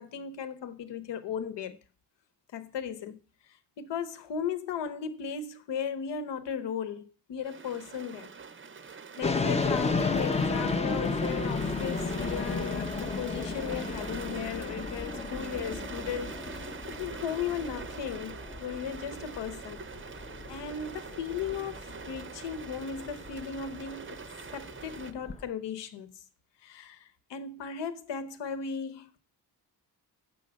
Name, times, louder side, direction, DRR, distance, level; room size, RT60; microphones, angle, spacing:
voice 1, 0.0-1.8 2.5-3.2 3.8-8.3 9.2-19.8 20.5-24.2 24.5-26.1 26.6-29.2, left 7 dB, 85° left, 1.1 m, -36 dB
sound 1, 7.4-25.1, right 5 dB, 30° right, 0.6 m, -44 dB
sound 2, 9.2-25.5, left 4 dB, 15° left, 0.5 m, -34 dB
7.3 x 6.8 x 6.2 m
wide cardioid pair, 165°, 41 cm